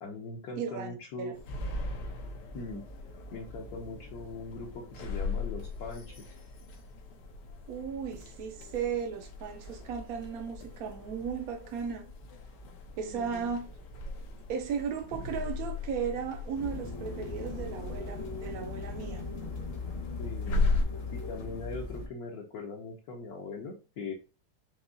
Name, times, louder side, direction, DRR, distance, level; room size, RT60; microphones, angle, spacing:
voice 1, 0.0-1.4 2.5-2.8 3.3-6.3 13.0-13.5 20.2-20.6 21.1-24.1, left 3 dB, 65° left, 1.2 m, -41 dB
voice 2, 0.6-1.3 7.7-12.0 13.0-13.6 14.5-19.2, right 7 dB, 65° right, 1.0 m, -36 dB
sound 1, 1.3-20.9, left 3 dB, 80° left, 1.5 m, -38 dB
sound 2, 16.5-22.1, left 4 dB, 45° left, 1.0 m, -38 dB
5.4 x 2.9 x 2.6 m
omnidirectional pair, 1.8 m